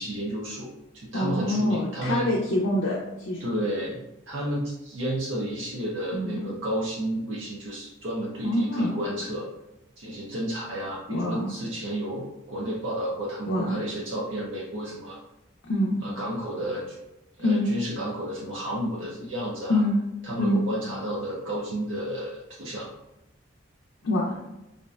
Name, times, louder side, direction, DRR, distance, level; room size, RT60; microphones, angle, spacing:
voice 1, 0.0-2.3 3.4-9.5 10.0-15.2 16.0-17.0 17.4-19.8 20.2-22.9, right 1 dB, 65° right, -5 dB, 0.5 m, -32 dB
voice 2, 1.1-3.0 3.3-3.5 6.1-6.5 8.4-8.9 11.1-11.5 13.5-13.8 15.7-16.0 17.4-17.7 19.7-20.0 20.4-20.6 24.0-24.5, left 1 dB, 85° left, -5 dB, 0.5 m, -25 dB
2.5 x 2.1 x 2.3 m, 0.93 s
head